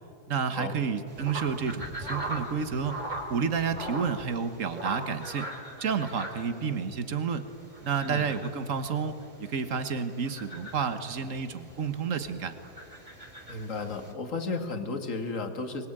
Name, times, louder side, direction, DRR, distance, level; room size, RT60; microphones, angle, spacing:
voice 1, 0.3-3.0 3.3-5.5 5.8-7.5 7.8-12.5, right 6 dB, 50° right, 10 dB, 1.7 m, -30 dB
sound 1, 1.1-14.1, right 1 dB, 25° right, 3.2 m, -41 dB
voice 2, 13.5-15.9, left 3 dB, 50° left, 6 dB, 2.3 m, -33 dB
24.5 x 21.5 x 9.0 m, 2.6 s
omnidirectional pair, 1.8 m